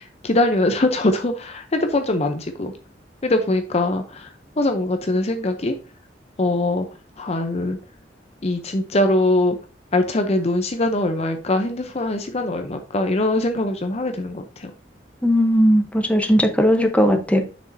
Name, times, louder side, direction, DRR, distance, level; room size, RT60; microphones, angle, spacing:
voice 1, 0.0-2.7 3.2-4.3 4.6-5.8 6.4-6.9 7.2-7.8 8.4-9.6 9.9-14.7, left 2 dB, 35° left, 6 dB, 0.7 m, -22 dB
voice 2, 15.2-17.4, equal, 10° left, 4 dB, 0.9 m, -17 dB
7.1 x 6.2 x 2.7 m, 0.34 s
head